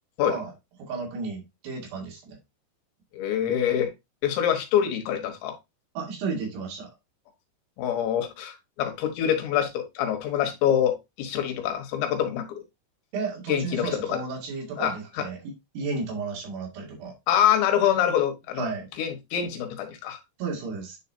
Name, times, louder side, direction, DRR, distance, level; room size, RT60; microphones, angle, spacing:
voice 1, 0.8-2.4 6.0-6.9 13.1-17.1 18.6-18.9 20.4-21.0, right 4 dB, 70° right, 3.9 m, -33 dB
voice 2, 3.1-3.9 4.2-5.6 7.8-12.6 13.5-14.2 14.8-15.3 17.3-18.7 19.0-20.2, left 9 dB, 85° left, 3.5 m, -25 dB
10.0 x 4.0 x 2.7 m
omnidirectional pair, 5.1 m